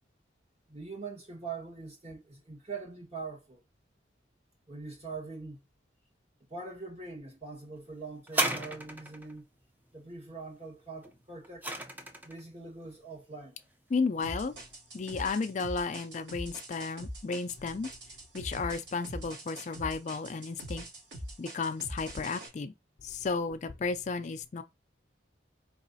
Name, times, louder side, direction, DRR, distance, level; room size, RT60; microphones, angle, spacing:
voice 1, 0.7-3.6 4.7-5.6 6.5-9.4 9.9-11.8 12.2-13.6, right 4 dB, 35° right, 1.4 m, -43 dB
sound 1, 8.3-9.3 11.0-12.4 13.2-13.3, right 1 dB, 10° right, 0.5 m, -33 dB
voice 2, 13.9-14.5 14.9-17.9 18.3-20.8 21.4-22.7 23.0-24.6, left 4 dB, 40° left, 0.3 m, -33 dB
sound 2, 14.2-22.5, right 1 dB, 85° right, 2.9 m, -42 dB
4.7 x 3.0 x 2.7 m
head